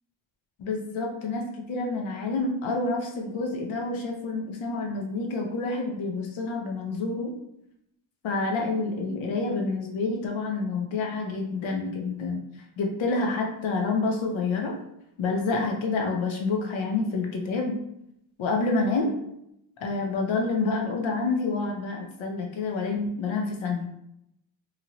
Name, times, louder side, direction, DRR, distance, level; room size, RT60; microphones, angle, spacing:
voice 1, 0.6-1.4 1.7-7.3 8.2-12.4 12.8-14.8 15.2-17.8 18.4-19.2 19.8-23.9, left 3 dB, 85° left, 1 dB, 0.7 m, -28 dB
2.9 x 2.8 x 2.6 m, 0.79 s
wide cardioid pair, 130°, 46 cm